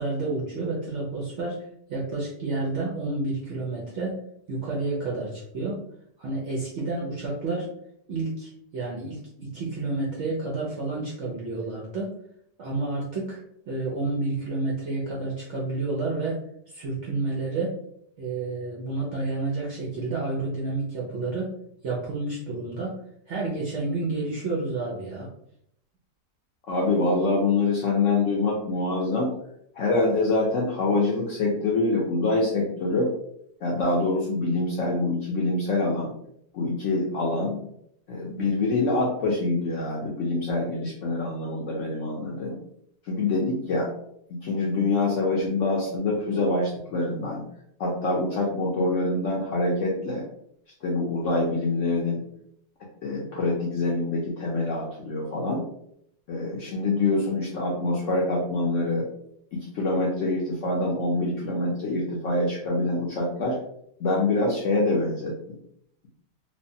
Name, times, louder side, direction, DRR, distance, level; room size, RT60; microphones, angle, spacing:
voice 1, 0.0-1.6 1.9-4.2 4.5-5.8 6.2-7.7 8.1-12.1 12.6-16.4 16.7-17.8 18.2-21.5 21.8-23.0 23.3-25.3, right 3 dB, 70° right, -4 dB, 0.7 m, -30 dB
voice 2, 26.7-29.3 29.7-33.1 33.6-36.1 36.5-37.6 38.1-42.6 43.0-43.9 44.3-47.4 47.8-50.2 50.8-52.2 53.0-55.6 56.3-59.0 59.5-63.6 64.0-65.3, left 2 dB, 70° left, -3 dB, 0.7 m, -25 dB
3.1 x 2.1 x 2.6 m, 0.72 s
omnidirectional pair, 1.8 m